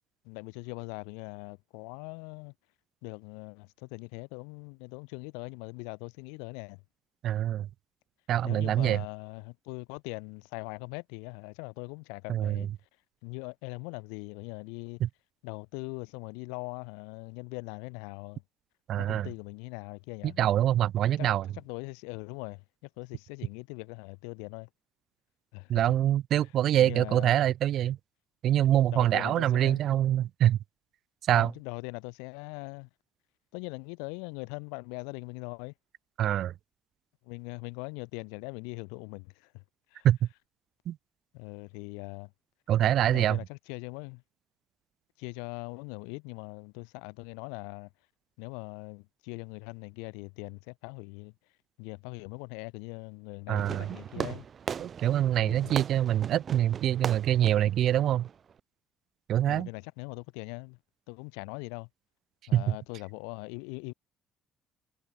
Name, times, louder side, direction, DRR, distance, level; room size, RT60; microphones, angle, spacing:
voice 1, 0.2-2.5 3.0-6.8 8.4-12.7 13.2-15.0 15.4-18.4 19.0-20.3 21.2-21.3 21.6-22.6 23.0-24.7 25.5-25.8 26.8-27.3 28.9-29.8 31.3-32.9 33.5-35.7 37.2-39.6 39.9-40.1 41.3-42.3 42.9-44.2 45.2-47.9 48.4-51.3 51.8-54.4 55.4-55.8 59.4-60.8 61.1-61.9 62.5-63.9, left 39 dB, 85° left, 2.9 m, -41 dB
voice 2, 7.2-7.7 8.3-9.0 12.3-12.7 15.0-15.1 18.9-19.3 20.2-21.5 25.7-28.0 28.4-30.6 31.2-31.5 36.2-36.5 40.0-40.2 40.9-41.0 42.7-43.4 53.5-54.3 54.8-58.3 59.3-59.7 62.5-62.8, right 12 dB, 65° right, 0.4 m, -25 dB
Fireworks, 53.6-58.6, right 7 dB, 45° right, 0.8 m, -39 dB
supercardioid pair, 70°, 0 cm